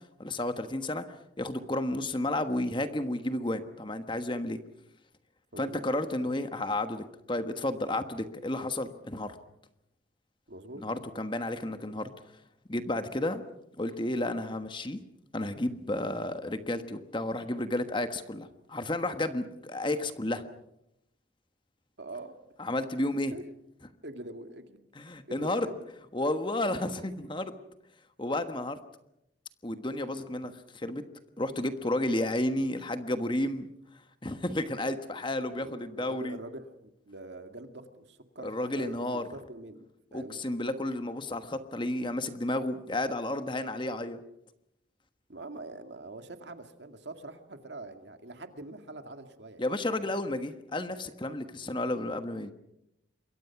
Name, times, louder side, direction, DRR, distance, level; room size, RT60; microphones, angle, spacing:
voice 1, 0.2-1.0 1.4-4.6 5.6-9.3 10.8-12.1 12.7-13.4 13.8-15.0 15.3-20.4 22.6-23.3 24.9-25.7 26.1-27.5 28.2-28.8 29.6-31.0 31.4-33.7 34.2-36.4 38.4-39.2 40.1-44.2 49.6-52.5, left 1 dB, 25° left, 9 dB, 1.3 m, -32 dB
voice 2, 10.5-10.8 22.0-22.3 23.3-23.4 24.0-24.8 25.3-25.9 35.4-40.4 45.3-49.7 49.9-50.1, right 2 dB, 65° right, 7 dB, 2.2 m, -44 dB
27.0 x 23.0 x 5.9 m, 0.83 s
head